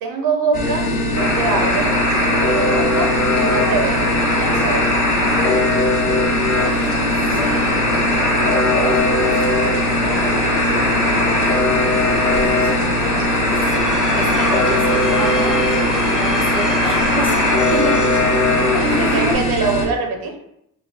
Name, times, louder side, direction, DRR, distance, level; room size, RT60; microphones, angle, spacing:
voice 1, 0.0-1.9 2.3-4.9 17.7-18.3 19.0-20.4, right 4 dB, 85° right, 3 dB, 0.6 m, -24 dB
sound 1, 0.5-19.9, left 1 dB, 85° left, 0.7 m, -22 dB
Alarm, 1.1-19.3, left 2 dB, 50° left, 0.9 m, -20 dB
voice 2, 6.6-7.8 8.2-10.5 12.4-13.7 14.1-15.6 16.1-17.5 18.7-19.4, equal, 15° left, -2 dB, 0.8 m, -29 dB
Screech, 13.6-19.0, right 1 dB, ahead, 0.4 m, -32 dB
2.4 x 2.2 x 3.3 m, 0.77 s
cardioid pair, 70°, 35 cm